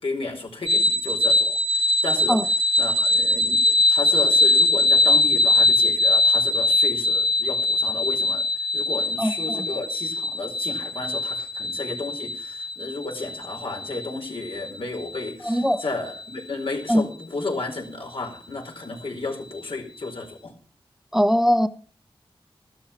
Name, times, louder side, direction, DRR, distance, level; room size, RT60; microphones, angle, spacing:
voice 1, 0.0-2.4 2.8-8.5 8.7-20.5, left 3 dB, 85° left, 4.5 m, -33 dB
sound 1, 0.7-16.2, left 2 dB, 85° right, 1.1 m, -22 dB
voice 2, 9.2-9.6 15.4-15.8 16.9-17.0 21.1-21.7, equal, 5° right, 0.8 m, -20 dB
13.5 x 13.0 x 6.0 m
wide cardioid pair, 95°, 9 cm